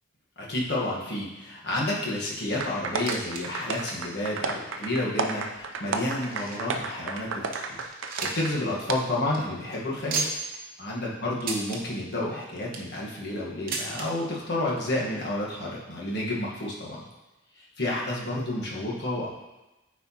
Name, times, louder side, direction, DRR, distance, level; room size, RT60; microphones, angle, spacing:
voice 1, 0.4-7.8 8.2-10.3 10.8-17.0 17.6-19.3, left 1 dB, 55° left, -4 dB, 1.3 m, -30 dB
sound 1, 2.6-8.5 8.9-9.0, right 4 dB, 65° right, 0.5 m, -32 dB
sound 2, 3.0-3.4 3.7-3.8 4.5-4.6 5.3-6.8 7.2-7.3 7.5-8.6 8.9-9.0 9.2-9.4 10.1-10.6 11.4-11.8 12.4-12.9 13.7-14.1 15.0-15.1 15.3-15.4 16.2-16.3, right 4 dB, 45° right, 0.8 m, -33 dB
8.8 x 4.3 x 2.9 m, 1.0 s
head